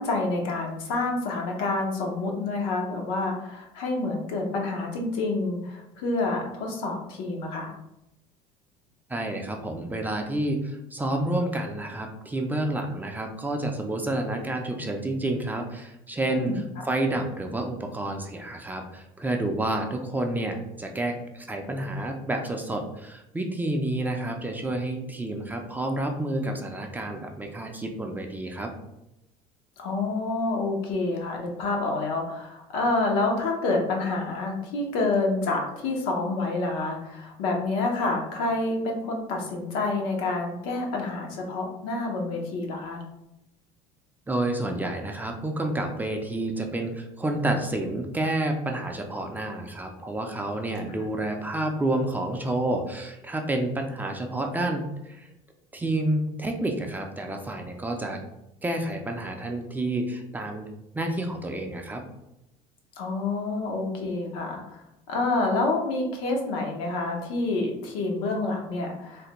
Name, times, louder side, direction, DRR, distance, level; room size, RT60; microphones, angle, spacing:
voice 1, 0.0-7.7 16.3-16.6 29.8-43.0 63.0-69.3, left 3 dB, 90° left, 1 dB, 0.7 m, -28 dB
voice 2, 9.1-16.5 16.9-28.7 44.3-55.3 55.7-58.2 58.6-60.7 60.9-62.0, right 1 dB, 10° right, 3 dB, 0.4 m, -29 dB
3.3 x 2.1 x 2.9 m, 0.87 s
cardioid pair, 110°, 15 cm